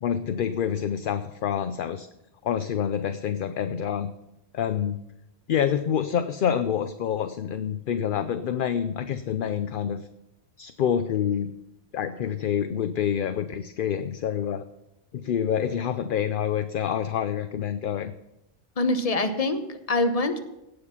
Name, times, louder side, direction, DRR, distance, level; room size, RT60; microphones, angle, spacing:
voice 1, 0.0-2.1 2.4-4.1 4.5-5.0 5.5-10.1 10.6-11.5 11.9-14.7 15.1-18.1, left 8 dB, 60° left, 11 dB, 0.7 m, -27 dB
voice 2, 18.8-20.4, left 2 dB, 35° left, 8 dB, 1.1 m, -25 dB
17.0 x 6.8 x 5.7 m, 0.89 s
omnidirectional pair, 1.1 m